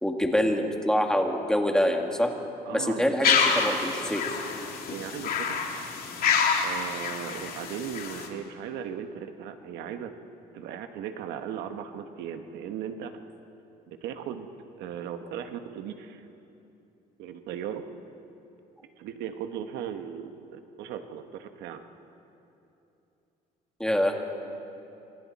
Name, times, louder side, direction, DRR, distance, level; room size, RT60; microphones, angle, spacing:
voice 1, 0.0-2.3 2.7-4.2 23.8-24.1, equal, 5° left, 2 dB, 2.0 m, -25 dB
voice 2, 2.7-3.3 4.9-5.6 6.2-10.1 10.5-13.1 13.9-14.5 14.8-16.2 17.2-17.9 19.0-21.8, right 8 dB, 85° right, 7 dB, 1.3 m, -37 dB
sound 1, 3.2-8.3, left 6 dB, 60° left, 2.9 m, -27 dB
27.0 x 26.0 x 4.2 m, 2.9 s
cardioid pair, 110°, 17 cm